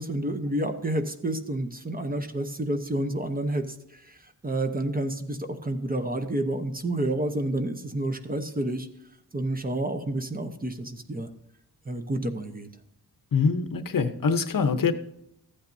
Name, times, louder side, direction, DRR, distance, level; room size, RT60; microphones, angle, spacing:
voice 1, 0.0-3.6 3.9-8.9 9.3-11.3 11.9-12.7, right 1 dB, 25° right, 6 dB, 0.8 m, -29 dB
voice 2, 13.3-14.9, left 5 dB, 60° left, 10 dB, 0.8 m, -24 dB
14.5 x 8.7 x 2.6 m, 0.78 s
wide cardioid pair, 150°, 38 cm